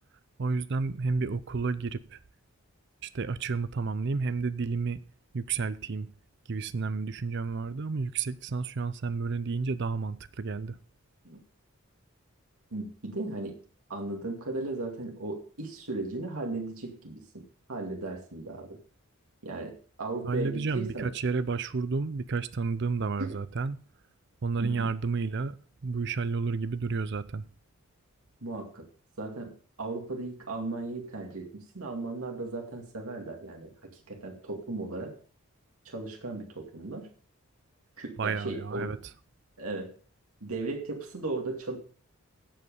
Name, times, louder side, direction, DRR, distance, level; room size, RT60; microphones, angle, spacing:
voice 1, 0.4-2.2 3.0-5.0 5.3-6.1 6.5-10.8 20.2-23.8 24.4-27.5 38.2-39.0, right 4 dB, 50° right, 0.5 m, -31 dB
voice 2, 12.7-13.6 13.9-17.4 17.7-18.8 19.4-21.1 23.2-23.4 24.6-24.9 28.4-28.9 29.2-35.2 35.9-37.1 38.0-38.9 39.6-39.9 40.4-41.8, right 2 dB, 80° right, 2.3 m, -36 dB
16.0 x 5.4 x 5.3 m
head